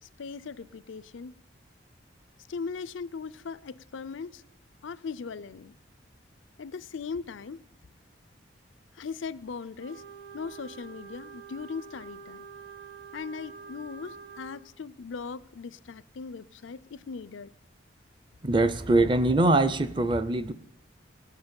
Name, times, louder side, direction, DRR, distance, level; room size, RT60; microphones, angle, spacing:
voice 1, 0.0-1.3 2.5-4.4 4.8-5.8 6.6-7.6 8.9-10.0 10.3-12.5 13.1-17.5, left 5 dB, 80° left, 18 dB, 0.5 m, -39 dB
Wind instrument woodwind instrument, 9.7-14.6, right 6 dB, 55° right, 1.8 m, -46 dB
voice 2, 18.4-20.5, right 2 dB, 25° right, 14 dB, 0.5 m, -23 dB
17.5 x 6.7 x 8.7 m, 0.79 s
head